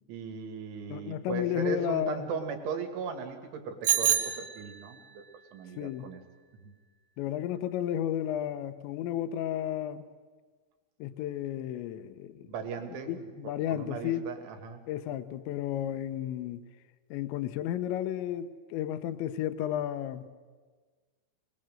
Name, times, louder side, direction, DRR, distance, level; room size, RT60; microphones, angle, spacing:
voice 1, 0.1-5.2 5.5-6.2 6.6-6.7 12.5-13.3 13.7-14.8, right 6 dB, 90° right, 6 dB, 4.5 m, -37 dB
voice 2, 0.9-2.3 5.8-6.1 7.2-10.0 11.0-12.5 13.1-14.3 14.9-16.6 17.1-20.2, left 11 dB, 80° left, 11 dB, 3.2 m, -33 dB
Bicycle bell, 3.8-5.1, right 9 dB, 65° right, 1.9 m, -28 dB
25.0 x 20.0 x 7.8 m, 1.4 s
omnidirectional pair, 5.3 m